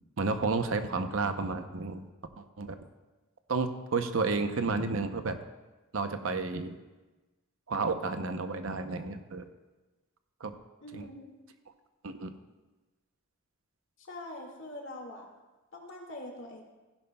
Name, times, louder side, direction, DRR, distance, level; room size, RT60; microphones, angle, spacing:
voice 1, 0.2-2.1 2.4-2.8 3.5-5.4 5.9-6.8 7.7-9.5 10.4-10.5 10.9-11.1 12.0-12.3, right 3 dB, 65° right, 8 dB, 0.7 m, -31 dB
voice 2, 10.8-11.3 14.1-15.3 15.7-16.6, left 1 dB, 60° left, 0 dB, 1.9 m, -43 dB
15.5 x 11.0 x 2.3 m, 1.2 s
head